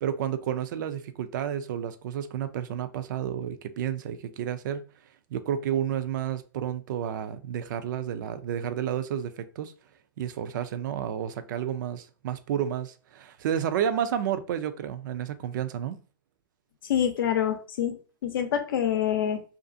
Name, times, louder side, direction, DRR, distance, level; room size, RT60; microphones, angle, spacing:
voice 1, 0.0-4.9 5.3-9.7 10.2-16.0, right 9 dB, 65° right, 0.4 m, -31 dB
voice 2, 16.9-18.0 18.2-19.4, left 9 dB, 85° left, 0.6 m, -26 dB
2.5 x 2.4 x 2.5 m
hypercardioid pair, 145°, 11 cm